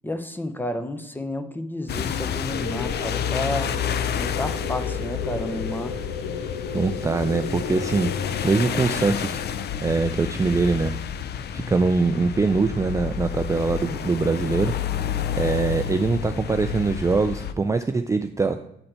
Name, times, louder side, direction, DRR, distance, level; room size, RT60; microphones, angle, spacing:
voice 1, 0.0-3.7 4.2-5.9, left 1 dB, 10° left, 9 dB, 0.7 m, -31 dB
sound 1, 1.9-17.5, left 8 dB, 55° left, 0.5 m, -29 dB
sound 2, 2.5-11.8, left 4 dB, 85° left, 1.1 m, -36 dB
voice 2, 6.7-9.4 9.8-10.9 11.5-14.7 15.4-18.6, right 4 dB, 15° right, 8 dB, 0.4 m, -23 dB
7.9 x 4.2 x 4.3 m, 0.78 s
cardioid pair, 90°, 20 cm